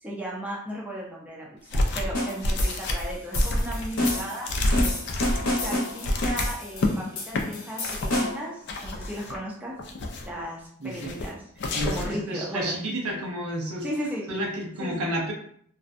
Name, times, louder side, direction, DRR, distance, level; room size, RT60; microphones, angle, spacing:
voice 1, 0.0-5.3 5.6-9.7 10.3-11.5 11.8-12.7 13.8-14.3 14.8-15.0, equal, 5° right, -4 dB, 0.5 m, -36 dB
sound 1, 1.7-2.2 2.4-6.9 7.3-7.4 7.8-8.2 8.7-9.4 9.8-10.4 10.9-11.3 11.6-12.2, left 1 dB, 55° left, 0.4 m, -28 dB
sound 2, 2.1-8.5, left 1 dB, 80° left, 0.7 m, -30 dB
voice 2, 10.8-11.1 11.7-13.8 14.3-15.3, right 1 dB, 85° right, -1 dB, 0.7 m, -31 dB
2.5 x 2.1 x 2.5 m, 0.64 s
head